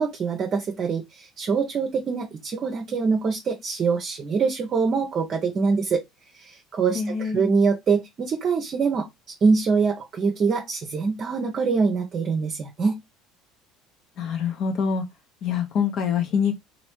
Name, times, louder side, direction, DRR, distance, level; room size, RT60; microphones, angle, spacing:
voice 1, 0.0-6.0 6.4-9.1 9.4-13.0, right 5 dB, 40° right, 0.7 m, -24 dB
voice 2, 6.9-7.5 14.2-15.0 15.4-16.5, left 6 dB, 55° left, 1.0 m, -25 dB
3.1 x 2.6 x 3.0 m
hypercardioid pair, 65°, 0 cm